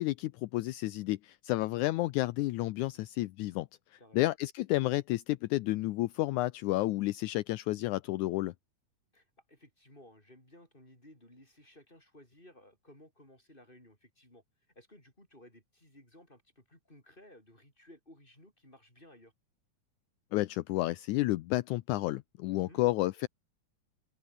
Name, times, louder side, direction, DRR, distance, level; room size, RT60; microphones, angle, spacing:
voice 1, 0.0-8.5 20.3-23.3, left 18 dB, 80° left, 1.9 m, -31 dB
voice 2, 4.0-4.3 9.1-14.4 14.7-19.3 22.5-22.8, left 1 dB, 15° left, 8.0 m, -58 dB
open air
omnidirectional pair, 3.9 m